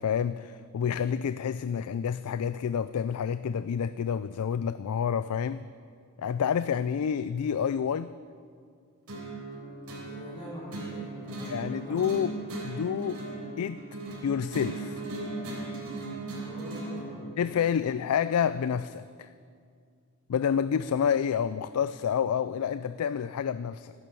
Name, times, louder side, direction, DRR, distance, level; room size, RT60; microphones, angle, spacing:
voice 1, 0.0-5.7 6.2-8.1 11.5-12.3 12.6-13.2 13.6-13.8 14.2-15.0 17.4-19.3 20.3-23.9, left 7 dB, 85° left, 14 dB, 0.4 m, -28 dB
sound 1, 9.1-17.1, right 2 dB, 75° right, 4.1 m, -38 dB
voice 2, 10.0-12.3 16.3-17.3 17.6-17.9, equal, 25° left, -7 dB, 4.7 m, -45 dB
14.0 x 11.0 x 7.0 m, 2.2 s
head